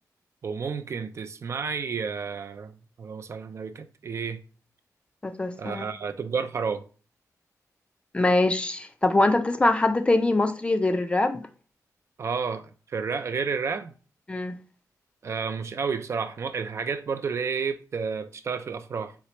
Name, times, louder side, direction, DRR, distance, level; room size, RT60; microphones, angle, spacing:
voice 1, 0.4-4.4 5.6-6.9 12.2-13.9 15.2-19.2, right 5 dB, 50° right, 0.3 m, -31 dB
voice 2, 5.2-5.9 8.1-11.4 14.3-14.5, left 2 dB, 20° left, 0.4 m, -23 dB
4.4 x 3.3 x 2.9 m
wide cardioid pair, 150°, 6 cm